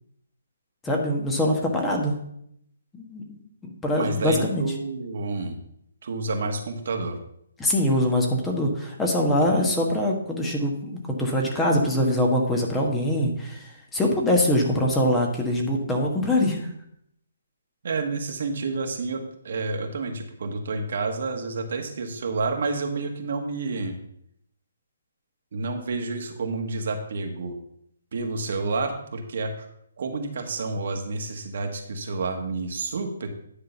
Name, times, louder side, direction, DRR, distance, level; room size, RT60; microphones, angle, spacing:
voice 1, 0.8-2.2 3.0-4.6 7.6-16.7, left 1 dB, 10° left, 0 dB, 1.3 m, -23 dB
voice 2, 3.9-5.6 6.0-7.2 9.5-9.7 17.8-24.0 25.5-27.6 28.1-29.7 30.0-33.3, right 3 dB, 60° right, 4 dB, 1.5 m, -29 dB
10.0 x 3.8 x 6.9 m, 0.72 s
hypercardioid pair, 150°, 0 cm